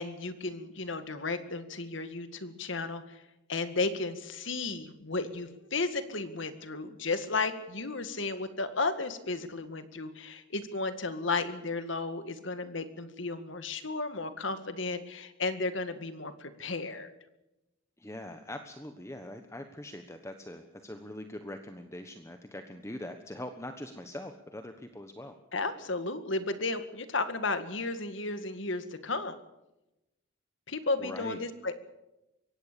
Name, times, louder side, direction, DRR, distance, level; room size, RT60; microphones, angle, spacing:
voice 1, 0.0-3.2 3.5-17.1 25.5-29.4 30.7-31.7, left 3 dB, 65° left, 10 dB, 2.0 m, -34 dB
voice 2, 18.0-25.4 31.0-31.4, left 1 dB, 15° left, 7 dB, 1.2 m, -42 dB
23.5 x 17.5 x 6.9 m, 0.95 s
head